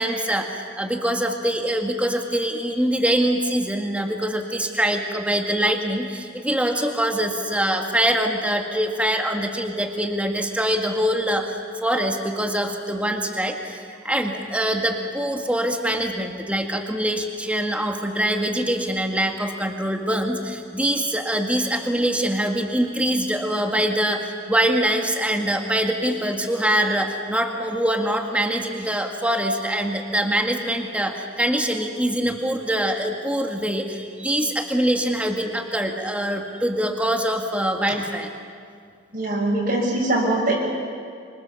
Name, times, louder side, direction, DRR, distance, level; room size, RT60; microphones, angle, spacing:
voice 1, 0.0-38.3, right 1 dB, 5° right, 2 dB, 1.9 m, -24 dB
voice 2, 39.1-40.5, right 2 dB, 50° right, -4 dB, 6.6 m, -22 dB
26.5 x 25.5 x 7.1 m, 2.2 s
head